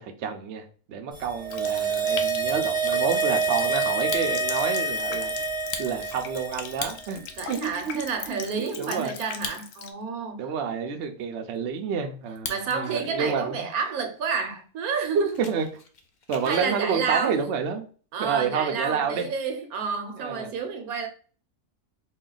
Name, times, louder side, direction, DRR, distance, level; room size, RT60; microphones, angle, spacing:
voice 1, 0.0-5.3 5.8-8.4 8.8-9.1 10.4-13.6 15.1-15.7 16.3-17.8 18.2-19.3 20.2-20.5, right 6 dB, 60° right, 0.8 m, -29 dB
sound 1, 1.2-6.7 7.0-7.1, right 4 dB, 5° right, 0.5 m, -27 dB
Water tap faucet, 1.5-9.9, left 7 dB, 85° left, 1.1 m, -40 dB
Fire, 3.9-4.7 5.1-5.2 5.6-7.3 7.8-7.9 8.1-8.5 9.3-10.1 10.4-10.5 11.0-12.8 13.1-13.5 14.1-14.2 14.5-14.6 14.9-16.7, left 5 dB, 65° left, 0.4 m, -39 dB
voice 2, 7.4-10.5 12.5-15.4 16.4-17.5 18.1-21.1, right 5 dB, 80° right, 1.3 m, -30 dB
4.2 x 2.3 x 3.8 m
omnidirectional pair, 1.5 m